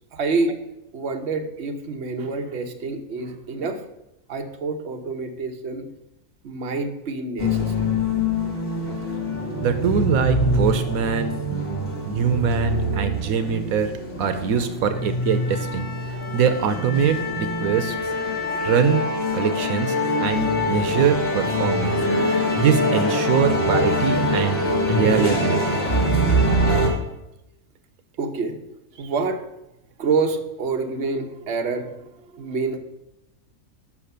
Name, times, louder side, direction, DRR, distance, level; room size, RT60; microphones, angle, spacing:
voice 1, 0.1-0.6 0.9-3.8 4.3-5.9 6.4-7.9 28.2-28.6 29.0-29.4 30.0-32.8, right 4 dB, 55° right, 5 dB, 1.1 m, -27 dB
sound 1, 7.4-26.9, left 1 dB, 40° left, 2.1 m, -24 dB
voice 2, 9.6-11.8 12.0-13.9 14.2-17.9 18.6-19.0 19.3-19.9 20.2-22.0 22.6-24.6 24.9-25.8, right 7 dB, 80° right, 9 dB, 1.1 m, -23 dB
8.5 x 5.6 x 6.7 m, 0.89 s
omnidirectional pair, 1.5 m